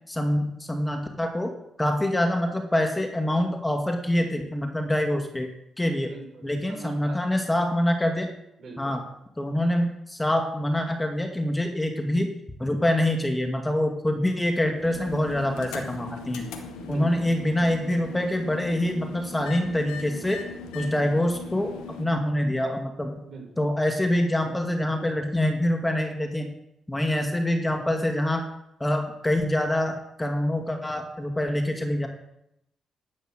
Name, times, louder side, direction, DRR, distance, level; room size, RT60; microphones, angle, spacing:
voice 1, 0.1-1.5 1.8-5.5 5.8-6.1 6.4-8.3 8.8-9.0 9.4-12.3 12.6-16.5 16.9-20.4 20.7-23.2 23.6-26.5 26.9-28.4 28.8-32.1, left 1 dB, 15° left, 4 dB, 2.1 m, -25 dB
voice 2, 6.0-7.7 8.6-9.0 16.8-17.3 23.2-23.7, right 4 dB, 60° right, 0 dB, 5.6 m, -44 dB
sound 1, 14.7-22.1, left 4 dB, 90° left, 1.4 m, -39 dB
11.0 x 8.6 x 6.5 m, 0.80 s
supercardioid pair, 55°, 0 cm